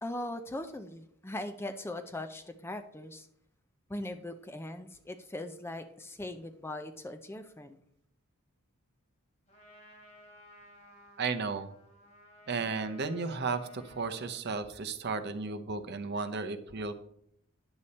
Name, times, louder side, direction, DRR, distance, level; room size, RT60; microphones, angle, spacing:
voice 1, 0.0-3.3 3.9-7.8, left 1 dB, 10° left, 9 dB, 0.5 m, -40 dB
Trumpet, 9.5-14.5, equal, 30° left, 3.1 m, -56 dB
voice 2, 11.2-11.7 12.5-17.0, right 4 dB, 50° right, 9 dB, 0.7 m, -34 dB
9.7 x 6.9 x 4.2 m, 0.71 s
head